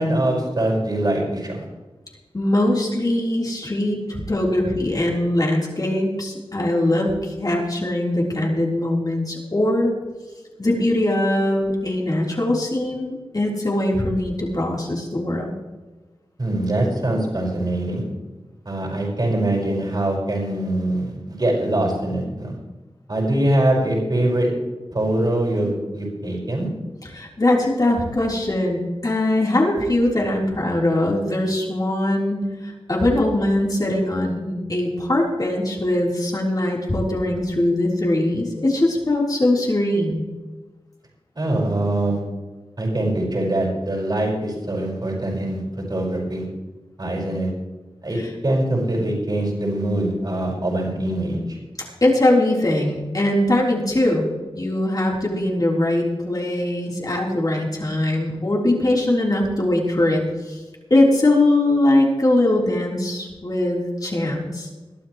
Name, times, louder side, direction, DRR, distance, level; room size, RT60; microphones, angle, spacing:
voice 1, 0.0-1.7 16.4-18.0 18.7-22.5 23.1-24.5 24.9-26.7 41.4-42.2 42.8-45.6 45.9-46.4 47.0-47.5 48.0-51.6, right 1 dB, 45° right, -2 dB, 5.3 m, -23 dB
voice 2, 2.3-9.9 10.6-15.5 27.0-40.2 48.2-48.3 52.0-54.3 54.5-60.6 60.9-64.7, left 1 dB, 40° left, -2 dB, 3.8 m, -21 dB
21.0 x 12.0 x 3.2 m, 1.2 s
wide cardioid pair, 85°, 10 cm